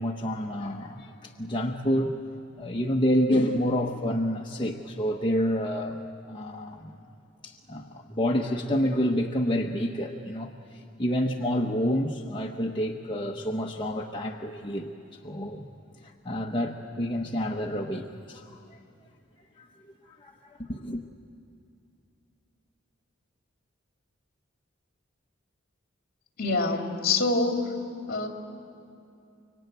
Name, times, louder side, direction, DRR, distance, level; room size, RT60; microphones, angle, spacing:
voice 1, 0.0-2.1 2.6-6.9 7.4-15.7 16.0-18.8 19.6-19.7 20.1-21.0, equal, 25° left, 0 dB, 1.0 m, -29 dB
voice 2, 26.4-27.7 28.1-28.3, left 3 dB, 50° left, 2 dB, 2.8 m, -25 dB
25.5 x 23.5 x 9.3 m, 2.6 s
head